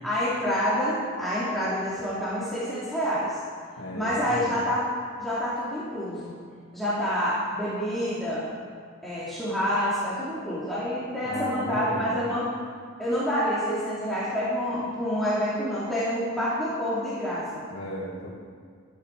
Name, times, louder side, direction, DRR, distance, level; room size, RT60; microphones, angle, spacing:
voice 1, 0.0-3.4 3.9-4.9 5.2-6.3 6.7-8.5 9.0-12.5 13.0-17.6, equal, ahead, -11 dB, 2.8 m, -27 dB
voice 2, 3.8-4.5 11.2-12.2 17.7-18.3, equal, 70° left, -5 dB, 2.3 m, -35 dB
15.0 x 12.0 x 4.6 m, 2.1 s
head